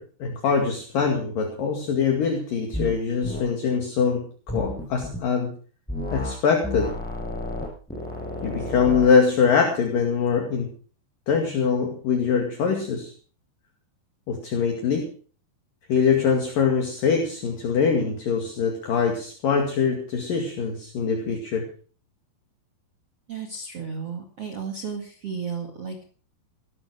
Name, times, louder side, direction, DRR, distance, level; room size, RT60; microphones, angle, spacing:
voice 1, 0.0-5.5 6.1-6.9 8.4-10.7 11.3-13.1 14.3-15.1 15.9-21.6, left 6 dB, 55° left, 2 dB, 3.7 m, -23 dB
sound 1, 2.7-3.0 3.2-3.4 4.5-5.2 5.9-6.3 6.6-9.1, left 1 dB, ahead, 7.3 m, -31 dB
voice 2, 23.3-26.0, right 5 dB, 40° right, 4 dB, 2.5 m, -33 dB
18.0 x 14.0 x 4.9 m, 0.42 s
omnidirectional pair, 5.1 m